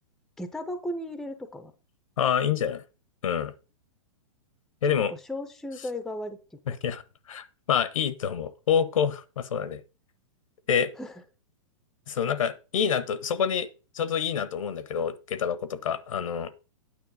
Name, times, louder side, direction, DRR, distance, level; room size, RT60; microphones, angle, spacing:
voice 1, 0.4-1.7 5.1-6.4 6.7-6.8 11.0-11.1, left 1 dB, ahead, 0.5 m, -35 dB
voice 2, 2.2-2.8 3.2-3.5 4.8-5.1 6.7-7.0 7.3-9.8 10.7-10.9 12.1-13.7 13.9-16.5, left 7 dB, 80° left, 1.1 m, -27 dB
9.4 x 5.8 x 5.2 m
hypercardioid pair, 160°, 17 cm